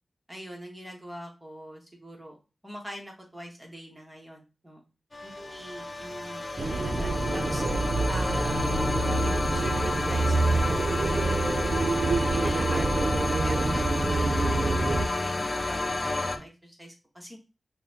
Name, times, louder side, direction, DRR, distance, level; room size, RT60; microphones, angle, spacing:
voice 1, 0.3-2.4 2.6-4.8 5.2-7.6 8.1-11.6 12.3-17.4, equal, 10° right, 0 dB, 1.1 m, -42 dB
sound 1, 5.1-16.4, left 2 dB, 35° left, 0.4 m, -30 dB
sound 2, 6.6-15.1, right 3 dB, 80° right, 0.4 m, -27 dB
Scratching (performance technique), 6.8-7.2 7.6-7.9 8.6-8.9 9.3-9.6 10.3-10.7 11.0-11.3 12.0-12.3 12.7-13.0, left 1 dB, 50° right, 0.8 m, -37 dB
5.4 x 2.1 x 2.7 m, 0.30 s
wide cardioid pair, 85°, 0 cm